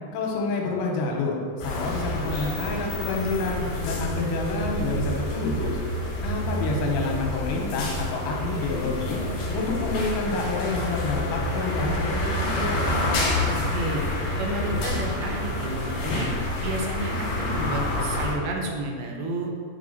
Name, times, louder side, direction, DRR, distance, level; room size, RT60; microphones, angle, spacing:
voice 1, 0.1-5.8 6.2-9.2 9.5-12.7, left 3 dB, 85° left, 0 dB, 3.1 m, -28 dB
sound 1, 1.6-18.3, left 1 dB, 70° left, 3.0 m, -28 dB
voice 2, 13.5-14.0 14.4-16.3 16.6-19.5, right 2 dB, 75° right, 1 dB, 2.5 m, -31 dB
8.7 x 3.5 x 3.9 m, 2.1 s
omnidirectional pair, 4.9 m